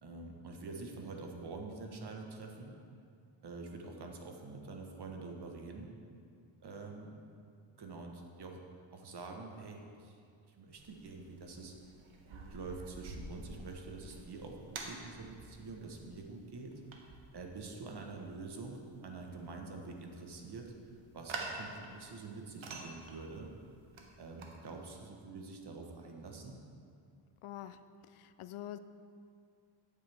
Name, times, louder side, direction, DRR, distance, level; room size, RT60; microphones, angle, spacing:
voice 1, 0.0-2.8 3.4-5.9 6.6-7.2 7.8-8.6 8.9-10.2 10.4-11.7 12.2-16.8 17.3-20.7 21.1-23.5 24.2-26.6, right 3 dB, 50° right, 2 dB, 1.4 m, -46 dB
sound 1, 10.7-24.8, right 3 dB, 70° right, 1.4 m, -49 dB
voice 2, 27.4-28.8, left 12 dB, 80° left, 12 dB, 0.6 m, -46 dB
12.0 x 9.0 x 3.6 m, 2.3 s
wide cardioid pair, 115°, 49 cm